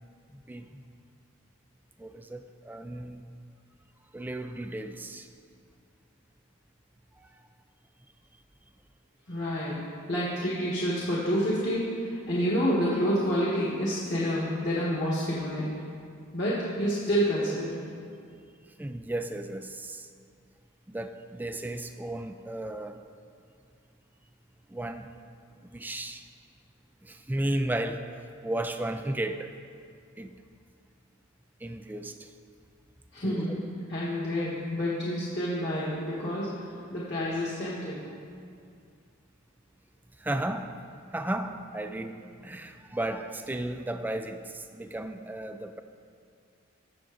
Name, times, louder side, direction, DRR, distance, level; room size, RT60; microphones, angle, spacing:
voice 1, 2.0-3.3 4.1-5.3 7.2-7.3 18.8-20.1 20.9-23.0 24.7-25.1 25.7-26.2 27.0-28.1 28.4-29.5 30.2-30.3 31.6-32.3 33.2-33.5 40.2-40.7 41.1-45.8, right 1 dB, 10° right, 7 dB, 0.3 m, -34 dB
voice 2, 9.3-9.8 10.1-15.7 16.3-17.8 33.1-36.5 36.9-38.0, equal, 55° left, -7 dB, 1.7 m, -28 dB
19.5 x 6.8 x 2.6 m, 2.3 s
head